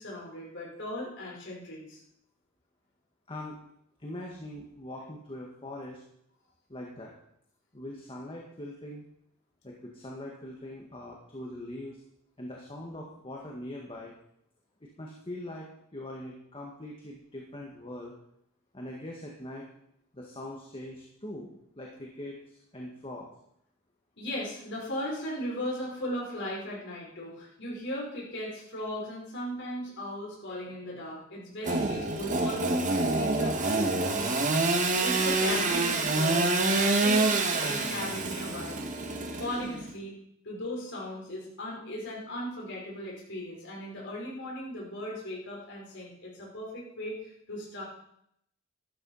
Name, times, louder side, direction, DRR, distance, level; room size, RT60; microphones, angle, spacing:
voice 1, 0.0-2.0 24.2-34.6 35.0-36.5 36.8-38.8 39.4-40.2 40.4-47.8, left 1 dB, 60° left, -3 dB, 5.3 m, -37 dB
voice 2, 3.3-3.6 4.0-6.0 6.7-7.1 7.7-9.1 9.6-12.0 12.4-14.1 14.8-18.1 18.7-19.7 20.1-23.3, left 1 dB, 25° left, -1 dB, 1.8 m, -42 dB
Engine / Sawing, 31.6-39.9, right 2 dB, 35° right, 1.8 m, -27 dB
12.5 x 12.0 x 5.7 m, 0.74 s
head